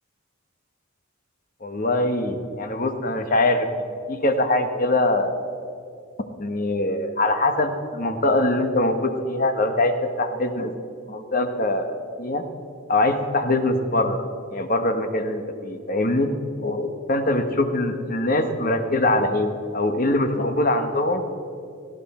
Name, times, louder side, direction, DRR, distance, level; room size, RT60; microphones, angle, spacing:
voice 1, 1.6-3.7 4.1-5.5 6.4-9.9 10.2-10.7 11.1-12.4 12.9-14.2 14.5-16.3 16.6-21.2, left 2 dB, 40° left, 7 dB, 1.2 m, -23 dB
18.0 x 14.5 x 4.3 m, 2.5 s
head